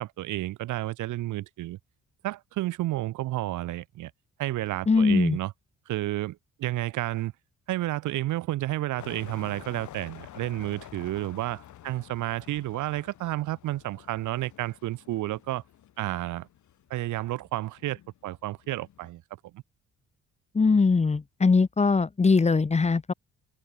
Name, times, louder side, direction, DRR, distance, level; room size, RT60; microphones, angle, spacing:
voice 1, 0.0-1.8 2.2-4.1 4.4-5.5 5.9-7.3 7.7-15.6 16.0-16.5 16.9-19.2 19.5-19.6, right 16 dB, 80° right, 0.8 m, -31 dB
voice 2, 4.9-5.4 20.5-23.1, left 4 dB, 20° left, 1.0 m, -21 dB
sound 1, 9.0-19.1, left 12 dB, 70° left, 2.8 m, -49 dB
cardioid pair, 90°, 30 cm